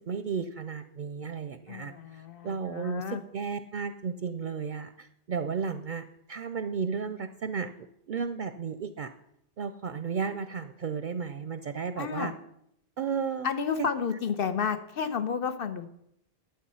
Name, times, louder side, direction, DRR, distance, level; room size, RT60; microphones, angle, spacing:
voice 1, 0.1-7.7 8.1-9.1 9.6-12.3 13.0-13.5 13.8-13.9, right 6 dB, 55° right, 10 dB, 0.6 m, -34 dB
voice 2, 1.7-3.2 12.0-12.3 13.4-15.9, left 6 dB, 65° left, 10 dB, 1.1 m, -31 dB
11.5 x 7.7 x 5.6 m, 0.76 s
omnidirectional pair, 1.0 m